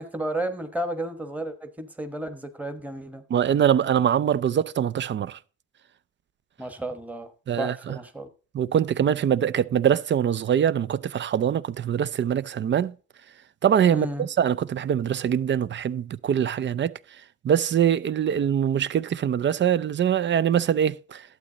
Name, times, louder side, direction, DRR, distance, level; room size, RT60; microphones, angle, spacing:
voice 1, 0.0-3.2 6.6-7.3 7.6-8.3 13.9-14.3, right 1 dB, 5° right, 1.1 m, -32 dB
voice 2, 3.3-5.4 7.5-8.0 8.5-12.9 13.6-16.9 17.4-21.2, right 9 dB, 40° right, 0.4 m, -23 dB
11.5 x 7.9 x 3.9 m
cardioid pair, 90°, 30 cm